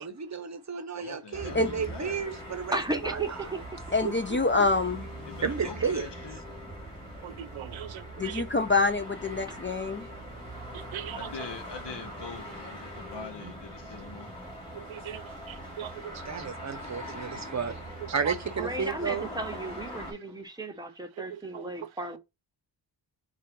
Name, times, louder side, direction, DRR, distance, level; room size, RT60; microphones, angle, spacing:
voice 1, 0.0-2.8 3.0-3.3 4.0-4.6 5.4-6.1 16.3-17.8 18.1-19.3, right 6 dB, 35° right, 0.8 m, -32 dB
voice 2, 1.0-2.2 5.3-6.4 10.6-10.7 11.1-14.3, left 5 dB, 65° left, 1.0 m, -43 dB
sound 1, 1.3-20.1, right 1 dB, 10° left, 2.3 m, -42 dB
voice 3, 2.7-3.9 5.8-5.9 9.5-9.6 18.6-22.2, right 1 dB, 10° right, 0.9 m, -35 dB
voice 4, 3.9-5.1 8.2-10.1, left 3 dB, 25° left, 0.5 m, -26 dB
voice 5, 7.2-8.6 10.7-11.5 13.2-13.5 14.7-16.5 18.0-18.7 21.2-21.6, right 11 dB, 90° right, 0.6 m, -41 dB
4.6 x 2.5 x 4.5 m
wide cardioid pair, 105°, 46 cm